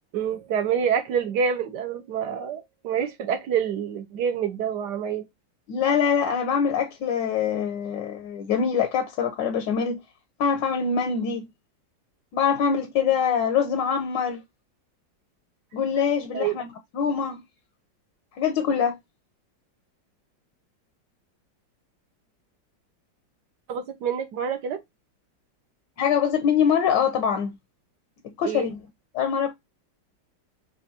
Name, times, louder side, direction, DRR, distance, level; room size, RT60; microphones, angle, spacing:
voice 1, 0.1-5.2 16.3-16.6 23.7-24.8 28.4-28.7, right 7 dB, 65° right, 1.4 m, -27 dB
voice 2, 5.7-10.0 10.4-11.5 12.3-14.4 15.7-16.7 16.9-17.4 18.4-19.0 26.0-27.6 28.2-28.8 29.1-29.5, left 7 dB, 75° left, 1.4 m, -24 dB
5.5 x 2.6 x 2.7 m
omnidirectional pair, 2.0 m